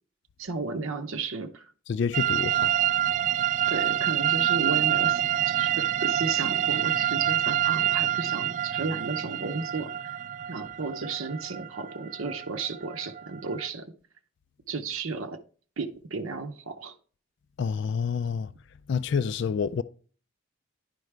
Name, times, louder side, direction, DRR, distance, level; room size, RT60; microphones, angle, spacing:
voice 1, 0.4-1.7 3.7-10.2 10.5-13.9 14.7-15.4 15.8-17.0, right 4 dB, 80° right, 0.7 m, -33 dB
voice 2, 1.9-2.7 17.6-18.5 18.9-19.8, left 6 dB, 60° left, 0.3 m, -28 dB
sound 1, 2.1-13.7, right 11 dB, 40° right, 0.3 m, -27 dB
10.5 x 4.7 x 3.3 m
head